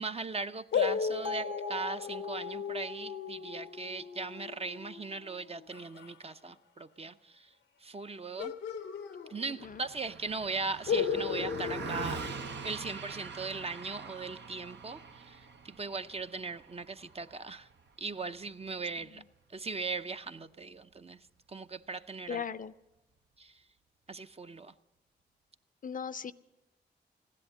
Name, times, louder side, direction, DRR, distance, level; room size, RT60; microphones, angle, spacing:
voice 1, 0.0-7.5 7.8-8.5 9.3-12.2 12.6-17.7 18.0-19.2 19.5-22.4 23.4-23.6 24.1-24.7, right 4 dB, 35° right, 9 dB, 0.6 m, -39 dB
sound 1, 0.7-6.1 8.4-9.8 10.1-10.2 10.9-13.0, left 7 dB, 85° left, 0.8 m, -36 dB
Bell, 1.2-5.3, left 2 dB, 50° right, 1.7 m, -44 dB
Car passing by, 9.6-19.2, right 6 dB, 70° right, 0.8 m, -44 dB
voice 2, 22.3-22.7 25.8-26.3, left 6 dB, 45° left, 15 dB, 0.5 m, -37 dB
15.5 x 10.5 x 6.7 m, 1.0 s
cardioid pair, 50°, 19 cm